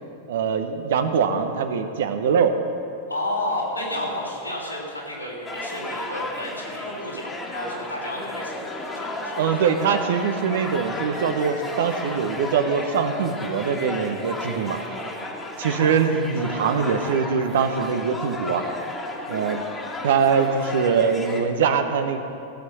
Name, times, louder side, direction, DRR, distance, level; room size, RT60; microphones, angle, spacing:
voice 1, 0.3-2.5 9.4-14.8 15.6-18.6 19.3-19.6 20.0-22.2, right 6 dB, 60° right, 8 dB, 1.0 m, -23 dB
voice 2, 3.1-8.6 8.9-9.6 15.1-15.4, left 1 dB, 90° left, -4 dB, 3.4 m, -31 dB
sound 1, 5.4-21.4, left 1 dB, 15° left, 1.8 m, -33 dB
15.5 x 7.7 x 7.2 m, 2.6 s
figure-of-eight pair, 90°, 0 cm